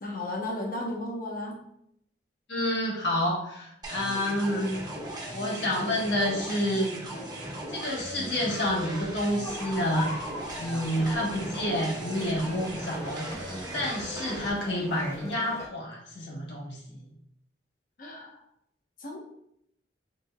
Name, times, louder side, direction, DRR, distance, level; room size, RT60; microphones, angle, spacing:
voice 1, 0.0-1.5 18.0-18.4 19.0-19.2, left 1 dB, 55° left, -1 dB, 1.0 m, -34 dB
voice 2, 2.5-4.8 5.3-6.9 7.7-10.1 10.6-13.2 13.7-17.1, left 1 dB, 80° left, -3 dB, 1.3 m, -29 dB
sound 1, 3.8-14.5, right 1 dB, 25° right, 0.9 m, -38 dB
sound 2, 9.4-15.7, left 1 dB, 15° left, 0.6 m, -41 dB
5.2 x 3.2 x 2.3 m, 0.75 s
head